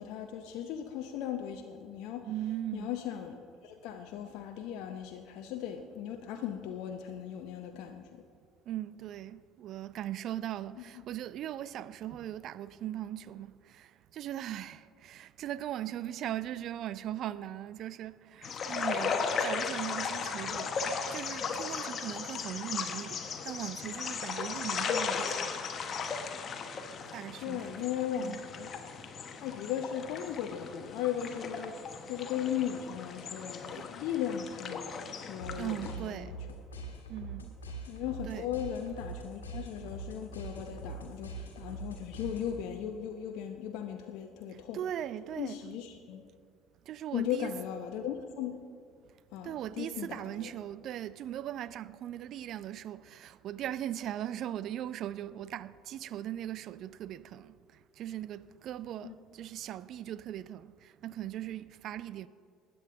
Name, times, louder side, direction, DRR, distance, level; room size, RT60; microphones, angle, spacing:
voice 1, 0.0-2.3 2.7-8.2 27.4-28.7 29.3-31.8 32.1-36.4 37.9-44.8 45.4-46.2 47.1-48.6 49.3-50.5 59.0-59.1, left 9 dB, 65° left, 0.7 m, -37 dB
voice 2, 2.3-3.0 8.7-25.5 27.1-27.8 28.2-28.4 33.5-33.9 35.6-36.3 37.1-37.5 38.2-38.5 40.6-41.0 41.7-41.8 44.7-45.6 46.9-47.5 49.4-57.6 58.0-62.3, right 11 dB, 55° right, 0.4 m, -39 dB
sound 1, 18.4-36.0, left 5 dB, 45° left, 1.2 m, -36 dB
sound 2, 35.4-42.8, right 2 dB, 90° left, 1.6 m, -43 dB
20.0 x 8.6 x 3.8 m
hypercardioid pair, 60°, 0 cm